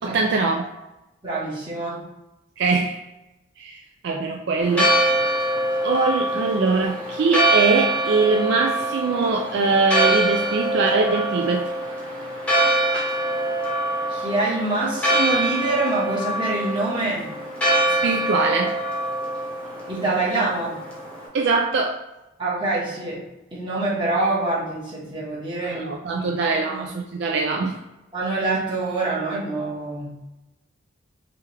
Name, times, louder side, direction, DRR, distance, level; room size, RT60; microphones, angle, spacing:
voice 1, 0.0-0.7 2.6-3.0 3.6-4.9 5.8-11.7 18.0-18.8 21.3-22.0 25.6-27.8, right 4 dB, 55° right, 1 dB, 0.3 m, -22 dB
voice 2, 1.2-2.0 14.1-17.3 19.9-20.8 22.4-23.2 23.5-26.3 26.7-26.9 28.1-30.2, right 2 dB, 25° right, -7 dB, 1.2 m, -25 dB
Church bell, 4.6-21.3, right 1 dB, 5° left, 0.9 m, -24 dB
3.4 x 3.3 x 3.2 m, 0.98 s
head